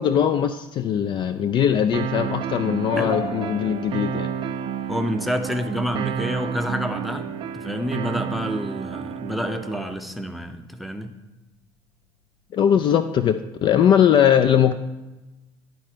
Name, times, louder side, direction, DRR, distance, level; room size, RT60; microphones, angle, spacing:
voice 1, 0.0-4.3 12.5-14.7, left 9 dB, 40° left, 9 dB, 0.4 m, -20 dB
sound 1, 1.9-9.9, right 9 dB, 40° right, 0.4 m, -30 dB
sound 2, 3.1-12.7, left 5 dB, 85° left, 0.8 m, -43 dB
voice 2, 4.9-7.3 7.5-11.1, equal, ahead, 7 dB, 0.6 m, -28 dB
10.5 x 4.0 x 4.4 m, 1.1 s
figure-of-eight pair, 55°, 13 cm